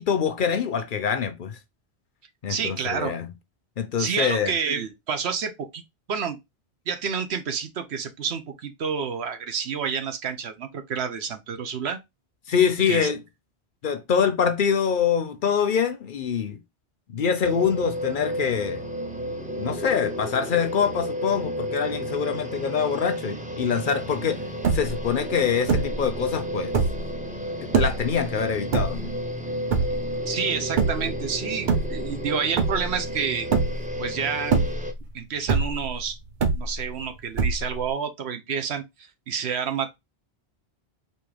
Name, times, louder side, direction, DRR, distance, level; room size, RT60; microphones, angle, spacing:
voice 1, 0.0-1.6 2.4-3.3 3.8-4.5 12.5-13.2 13.8-16.6 17.1-18.8 19.6-24.4 24.7-26.7 27.8-29.1, left 7 dB, 55° left, 0.7 m, -24 dB
voice 2, 2.5-3.1 4.0-5.8 6.1-6.4 6.9-12.0 12.9-13.1 30.3-33.5 34.0-34.6 35.1-36.2 36.5-38.8 39.3-40.0, right 6 dB, 80° right, 1.1 m, -29 dB
sound 1, 17.4-34.9, equal, 10° right, 0.5 m, -32 dB
sound 2, 24.2-24.3 24.4-25.1 25.7-26.1 26.6-27.1 27.7-28.1 28.7-29.3 29.7-30.2 30.8-31.2 31.6-32.3 32.6-33.1 33.5-34.0 34.4-35.1 35.5-36.0 36.4-37.0 37.4-37.9, right 4 dB, 50° right, 0.8 m, -23 dB
4.4 x 2.9 x 3.2 m
omnidirectional pair, 1.1 m